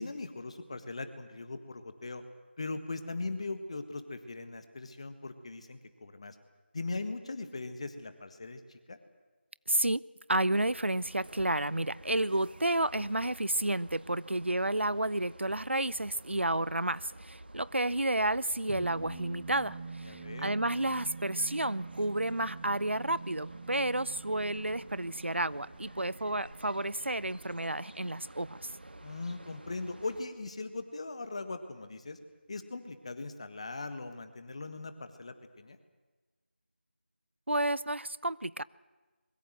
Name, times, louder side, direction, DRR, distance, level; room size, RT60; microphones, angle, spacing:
voice 1, 0.0-2.2 2.6-6.4 6.7-9.0 20.0-20.5 29.0-32.2 32.5-35.8, left 3 dB, 30° left, 9 dB, 1.6 m, -40 dB
voice 2, 9.7-10.0 10.3-28.7 37.5-38.6, right 1 dB, 85° right, 20 dB, 0.7 m, -31 dB
sound 1, 10.5-30.2, right 1 dB, 60° right, 1.7 m, -51 dB
sound 2, 18.7-29.4, right 4 dB, 15° right, 2.5 m, -47 dB
23.5 x 22.0 x 7.9 m, 1.3 s
figure-of-eight pair, 170°, 6 cm